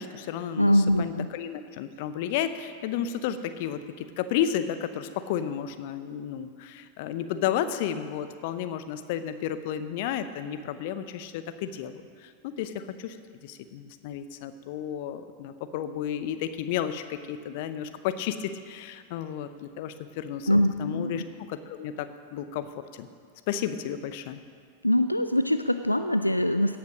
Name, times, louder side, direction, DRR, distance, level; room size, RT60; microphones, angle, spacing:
voice 1, 0.0-0.7 1.0-13.2 13.4-21.2 21.5-23.1 23.5-24.4, left 9 dB, 50° left, 11 dB, 0.7 m, -32 dB
voice 2, 0.5-1.3 20.5-21.2 24.8-26.8, left 1 dB, 85° left, 9 dB, 0.3 m, -23 dB
17.0 x 5.8 x 6.4 m, 2.1 s
figure-of-eight pair, 90°, 0 cm